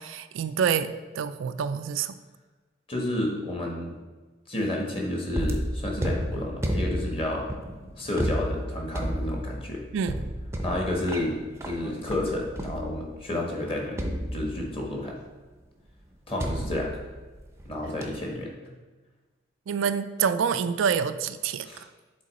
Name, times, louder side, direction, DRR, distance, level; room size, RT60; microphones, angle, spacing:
voice 1, 0.0-2.1 9.9-10.3 19.7-21.9, right 7 dB, 85° right, 11 dB, 0.3 m, -27 dB
voice 2, 2.9-4.0 4.5-7.5 8.0-9.8 10.6-14.0 14.3-15.2 16.3-17.0 17.6-18.7 21.6-21.8, left 1 dB, 30° left, -1 dB, 1.2 m, -30 dB
sound 1, 5.3-13.3 14.0-15.0 16.4-17.7 18.0-18.4, equal, 15° right, 0.5 m, -32 dB
7.7 x 3.9 x 4.1 m, 1.3 s
head